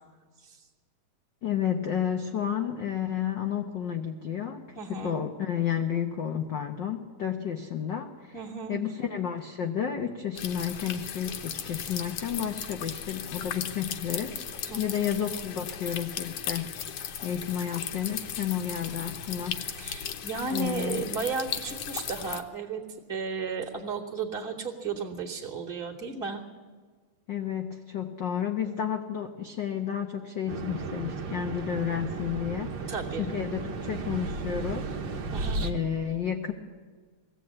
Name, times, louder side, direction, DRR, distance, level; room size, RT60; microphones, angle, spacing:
voice 1, 1.4-8.4 8.7-16.9 17.2-19.6 20.5-21.1 27.3-35.3 35.6-36.5, left 9 dB, 80° left, 5 dB, 1.0 m, -31 dB
voice 2, 4.7-5.2 8.3-8.8 14.7-14.9 19.8-22.8 23.1-26.4 32.9-33.3 35.3-35.7, right 5 dB, 10° left, -5 dB, 1.7 m, -34 dB
sound 1, 10.4-22.4, left 8 dB, 65° left, 2.0 m, -37 dB
sound 2, 30.5-35.7, right 4 dB, 50° right, 1.5 m, -34 dB
21.5 x 16.5 x 8.8 m, 1.6 s
omnidirectional pair, 3.6 m